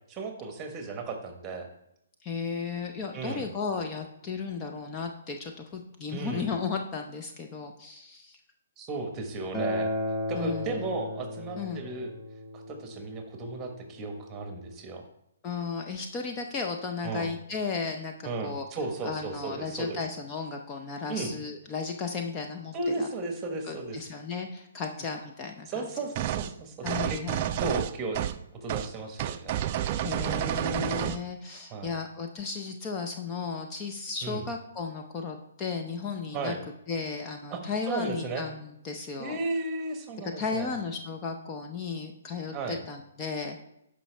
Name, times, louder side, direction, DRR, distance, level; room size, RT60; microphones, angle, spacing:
voice 1, 0.1-1.7 3.1-3.4 6.1-6.5 8.8-9.9 10.3-12.1 12.5-15.0 17.0-17.3 18.2-20.0 21.1-21.3 22.7-24.0 25.7-27.2 27.6-28.2 28.6-29.6 31.7-31.9 34.2-34.4 36.3-36.6 37.5-38.4 39.2-40.7 42.5-42.8, right 3 dB, 20° right, 4 dB, 1.3 m, -35 dB
voice 2, 2.2-8.4 10.3-10.8 11.6-11.8 15.4-18.7 19.0-23.1 23.6-25.9 26.8-27.8 30.0-36.5 36.9-39.4 40.2-43.6, left 5 dB, 25° left, 3 dB, 0.7 m, -35 dB
Acoustic guitar, 9.5-14.7, left 1 dB, ahead, 1.2 m, -35 dB
sound 1, 26.2-26.5 26.9-28.4 28.7-28.9 29.2-31.2, right 12 dB, 40° right, 0.4 m, -30 dB
12.0 x 5.2 x 3.4 m, 0.79 s
hypercardioid pair, 140°, 0 cm